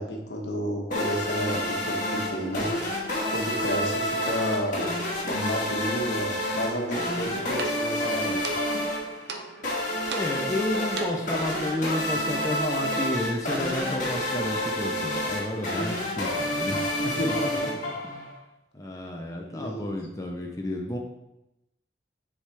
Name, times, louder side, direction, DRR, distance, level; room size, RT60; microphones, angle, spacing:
voice 1, 0.0-2.7 3.3-4.9 5.2-8.4 17.1-17.8 19.5-19.9, equal, 80° left, 0 dB, 1.2 m, -31 dB
sound 1, 0.9-18.3, left 1 dB, 45° left, 1.7 m, -29 dB
sound 2, 6.9-11.5, right 3 dB, 75° right, 0.7 m, -38 dB
voice 2, 10.1-17.1 18.0-18.3 18.7-21.0, left 1 dB, 20° left, 0 dB, 0.6 m, -31 dB
7.1 x 4.9 x 3.4 m, 0.90 s
head